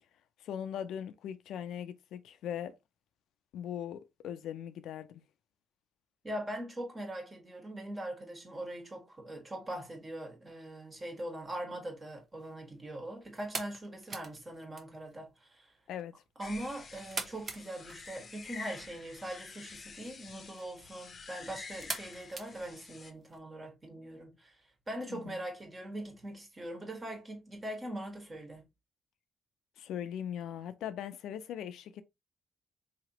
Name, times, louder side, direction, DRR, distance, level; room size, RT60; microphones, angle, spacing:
voice 1, 0.4-2.8 3.5-5.2 15.9-16.1 25.1-25.4 29.8-32.0, left 9 dB, 80° left, 0.5 m, -40 dB
voice 2, 6.2-15.7 16.4-28.7, right 1 dB, 25° right, 1.6 m, -42 dB
sound 1, 12.0-23.4, right 4 dB, 40° right, 0.9 m, -47 dB
sound 2, 16.4-23.1, left 5 dB, 40° left, 0.7 m, -49 dB
4.1 x 2.9 x 2.9 m
cardioid pair, 90°, 0 cm